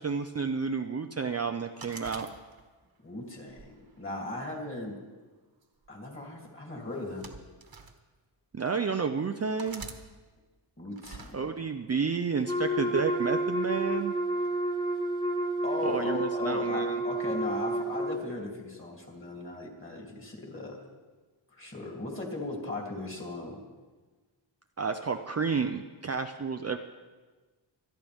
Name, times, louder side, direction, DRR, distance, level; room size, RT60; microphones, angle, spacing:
voice 1, 0.0-2.3 8.5-9.8 11.3-14.2 15.8-17.0 24.8-26.8, right 5 dB, 35° right, 5 dB, 0.5 m, -31 dB
sound 1, 1.8-2.9 3.5-4.7 5.6-5.9 6.9-8.0 8.7-8.8 9.6-10.0 11.0-11.3, right 4 dB, 50° right, 1.3 m, -46 dB
voice 2, 3.0-5.0 5.9-7.3 10.8-11.5 15.6-20.8 21.5-23.6, left 2 dB, 25° left, -1 dB, 2.9 m, -37 dB
Wind instrument woodwind instrument, 12.5-18.2, right 1 dB, 10° left, 1.1 m, -30 dB
25.5 x 10.5 x 3.6 m, 1.3 s
wide cardioid pair, 140°, 46 cm